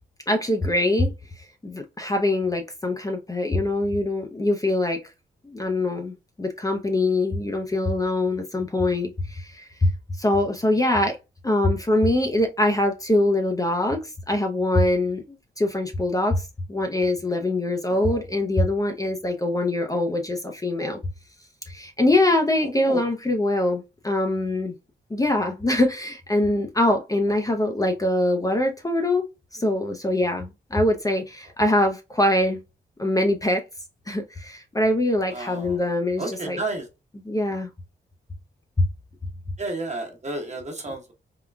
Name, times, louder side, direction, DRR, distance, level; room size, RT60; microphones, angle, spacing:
voice 1, 0.3-1.1 1.6-5.0 5.4-9.9 10.2-11.2 11.4-16.4 16.7-21.0 21.7-24.7 25.1-29.2 29.5-32.6 33.0-33.6 34.1-36.6 37.2-37.7 38.8-38.9, left 1 dB, 20° left, 0.5 m, -23 dB
voice 2, 17.9-18.2 22.8-23.0 35.3-35.8 36.2-36.8 39.6-41.1, right 2 dB, 40° right, 1.2 m, -32 dB
3.7 x 2.2 x 2.3 m
cardioid pair, 65°, 19 cm